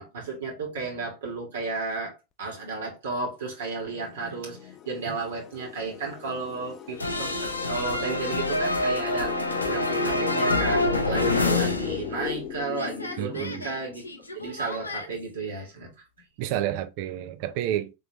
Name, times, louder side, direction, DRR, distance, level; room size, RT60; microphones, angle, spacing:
voice 1, 0.0-14.0 14.3-15.9, right 4 dB, 60° right, 1.8 m, -33 dB
sound 1, 3.7-14.2, left 11 dB, 30° left, 0.4 m, -37 dB
sound 2, 7.0-12.5 12.7-15.1, left 2 dB, 80° left, 0.6 m, -27 dB
voice 2, 13.2-13.7 16.4-17.9, right 12 dB, 45° right, 0.5 m, -30 dB
3.9 x 3.2 x 3.1 m
figure-of-eight pair, 90°, 0 cm